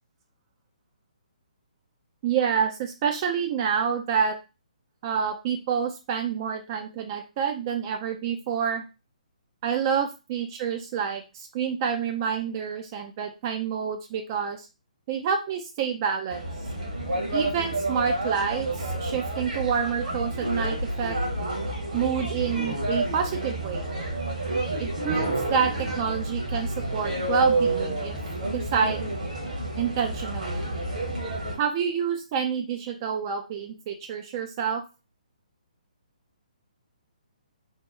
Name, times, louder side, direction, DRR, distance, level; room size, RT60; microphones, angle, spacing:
voice 1, 2.2-4.4 5.0-8.8 9.6-14.7 15.1-16.4 17.3-21.2 21.9-23.8 24.8-28.1 28.5-29.1 29.8-30.6 31.6-34.8, right 7 dB, 30° right, 4 dB, 0.4 m, -28 dB
sound 1, 16.3-31.5, right 1 dB, 75° right, 1.4 m, -29 dB
3.4 x 2.1 x 2.9 m, 0.28 s
figure-of-eight pair, 135°, 4 cm